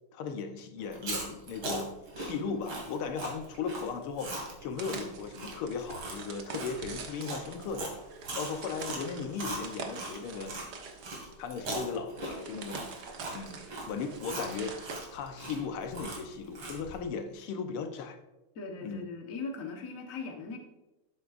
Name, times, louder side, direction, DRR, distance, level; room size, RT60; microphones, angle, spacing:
voice 1, 0.1-7.9 8.4-10.6 11.4-12.8 13.3-18.2 18.8-19.1, left 5 dB, 85° left, 6 dB, 1.8 m, -37 dB
Chewing mastication, 0.8-10.7 11.0-17.0, right 2 dB, 85° right, 3.1 m, -40 dB
sound 1, 4.8-15.0, right 4 dB, 55° right, 1.6 m, -45 dB
voice 2, 18.5-20.6, left 4 dB, 45° left, 2 dB, 1.5 m, -39 dB
12.0 x 9.6 x 2.5 m, 1.0 s
omnidirectional pair, 2.3 m